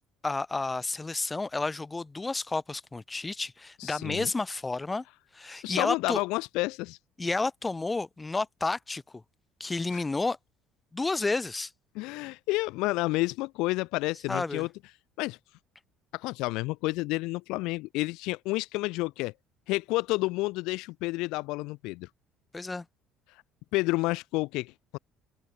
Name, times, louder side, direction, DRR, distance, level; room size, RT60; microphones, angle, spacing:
voice 1, 0.2-5.0 5.3-6.2 7.2-9.2 9.6-10.4 10.9-11.7 14.3-14.7 22.5-22.8, left 3 dB, 20° left, 1.4 m, -31 dB
voice 2, 3.8-4.3 5.6-7.0 11.9-14.7 15.2-15.4 16.1-19.3 19.7-22.1 23.7-25.0, left 22 dB, 70° left, 0.8 m, -30 dB
open air
hypercardioid pair, 60°, 0 cm